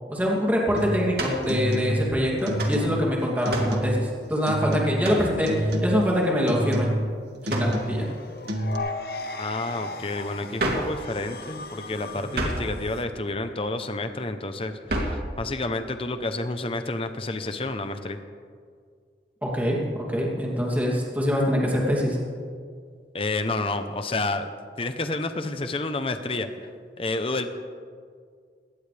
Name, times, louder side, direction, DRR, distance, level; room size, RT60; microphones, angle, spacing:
voice 1, 0.1-6.9 7.4-8.1 12.2-12.4 19.4-22.2, equal, 10° right, -3 dB, 2.8 m, -24 dB
sound 1, 0.8-1.1 1.4-2.1 2.4-3.1 3.5-4.1 4.5-5.2 5.5-6.1 6.5-7.1 7.4-8.1 8.5-8.8, right 1 dB, 80° right, 1.8 m, -28 dB
sound 2, 1.1-1.5 2.6-2.8 3.5-3.8 5.0-5.3 7.5-7.8 10.6-10.9 12.3-12.7 14.9-15.2, right 1 dB, 65° right, 2.8 m, -28 dB
sound 3, 7.5-13.0, left 3 dB, 60° left, 1.1 m, -37 dB
voice 2, 9.3-18.2 23.1-24.5 24.8-26.5 27.0-27.5, left 2 dB, 30° left, 8 dB, 0.8 m, -30 dB
21.0 x 18.5 x 3.5 m, 2.1 s
head